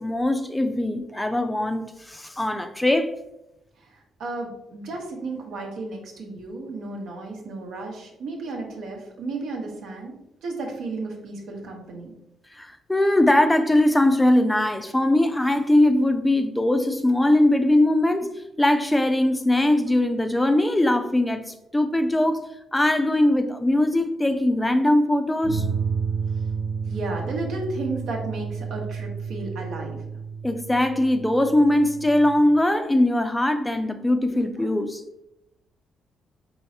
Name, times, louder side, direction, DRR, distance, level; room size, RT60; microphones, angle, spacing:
voice 1, 0.0-3.1 12.5-25.7 30.4-35.0, left 1 dB, 10° left, 0.4 m, -21 dB
voice 2, 3.8-10.2 10.4-12.1 26.9-30.0, right 2 dB, 80° right, 0.9 m, -33 dB
sound 1, 25.4-32.3, right 5 dB, 20° right, 0.8 m, -31 dB
4.5 x 3.1 x 2.7 m
cardioid pair, 90°, 0 cm